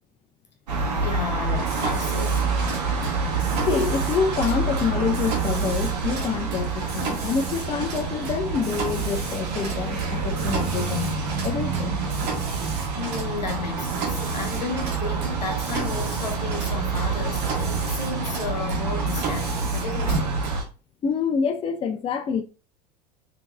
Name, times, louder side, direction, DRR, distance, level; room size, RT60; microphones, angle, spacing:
sound 1, 0.7-20.6, right 4 dB, 75° right, 0.9 m, -27 dB
voice 1, 1.0-2.5 12.9-20.4, left 4 dB, 90° left, 0.8 m, -33 dB
Mechanisms, 1.5-20.6, right 4 dB, 50° right, 1.1 m, -35 dB
voice 2, 3.7-11.1 11.4-12.0 21.0-22.4, left 6 dB, 25° left, 0.5 m, -27 dB
3.6 x 2.8 x 2.4 m
hypercardioid pair, 75°, 21 cm